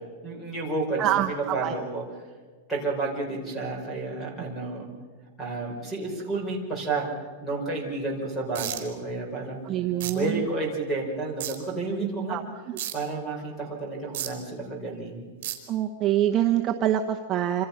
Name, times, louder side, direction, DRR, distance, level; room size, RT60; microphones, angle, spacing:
voice 1, 0.2-2.0 2.7-4.9 5.4-7.1 7.4-9.6 10.1-12.4 12.9-15.3, right 3 dB, 5° left, 0 dB, 4.7 m, -31 dB
voice 2, 1.0-1.7 9.7-10.5 12.3-12.4 15.7-17.6, right 12 dB, 20° right, 1 dB, 0.9 m, -25 dB
sound 1, 8.5-8.8 10.0-10.1 11.4-11.5 12.8-12.9 14.1-14.3 15.4-15.5, right 13 dB, 45° right, 4.0 m, -31 dB
27.5 x 26.0 x 5.8 m, 1.5 s
supercardioid pair, 180°, 0 cm